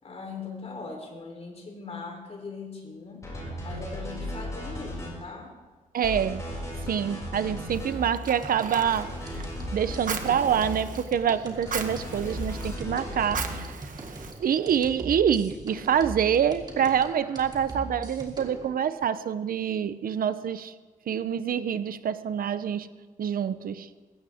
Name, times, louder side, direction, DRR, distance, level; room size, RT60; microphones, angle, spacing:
voice 1, 0.0-3.3 3.6-5.5, left 4 dB, 45° left, 1 dB, 3.6 m, -40 dB
sound 1, 3.2-5.1 6.0-7.9 8.9-10.7 11.7-13.6, left 1 dB, 20° left, 5.8 m, -36 dB
voice 2, 5.9-6.4 6.8-9.4 9.7-13.7 14.4-20.7 21.1-23.9, right 8 dB, 85° right, 13 dB, 0.7 m, -26 dB
Fire, 7.7-14.9, right 6 dB, 65° right, 1.2 m, -39 dB
sound 2, 7.9-18.7, right 1 dB, 30° right, 2.7 m, -40 dB
21.5 x 17.0 x 3.6 m, 1.3 s
wide cardioid pair, 155°, 15 cm